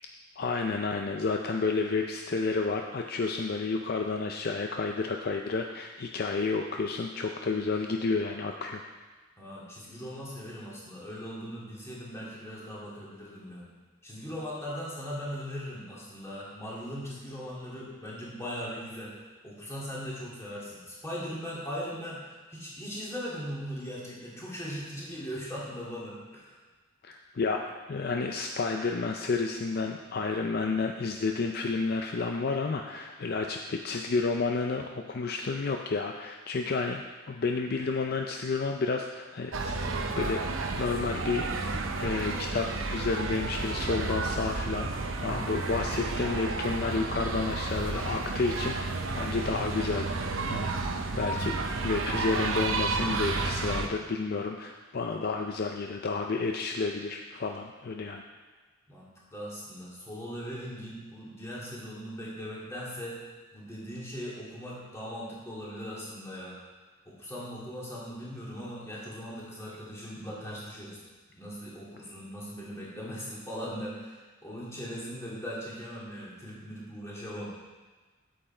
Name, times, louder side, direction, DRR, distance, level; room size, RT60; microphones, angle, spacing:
voice 1, 0.4-8.8 27.0-39.8 40.2-40.4 40.8-50.1 50.5-51.6 51.8-58.2, left 4 dB, 50° left, 3 dB, 0.5 m, -31 dB
voice 2, 9.4-13.6 14.0-19.1 19.4-26.6 58.9-63.2 63.5-66.6 67.0-71.0 71.3-77.5, equal, 15° left, -6 dB, 2.3 m, -39 dB
sound 1, 39.5-53.9, right 3 dB, 70° right, 0.8 m, -31 dB
8.7 x 7.8 x 4.4 m, 1.3 s
head